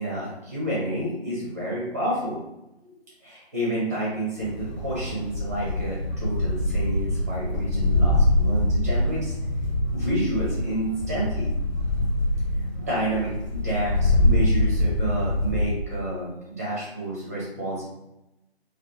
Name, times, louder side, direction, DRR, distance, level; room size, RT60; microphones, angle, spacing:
voice 1, 0.0-2.4 2.8-2.9 3.2-9.4 9.9-11.5 12.8-17.8, right 1 dB, 15° right, -7 dB, 0.6 m, -30 dB
sound 1, 4.4-15.7, left 1 dB, 45° left, 0.9 m, -24 dB
2.4 x 2.3 x 2.5 m, 0.90 s
figure-of-eight pair, 150°, 32 cm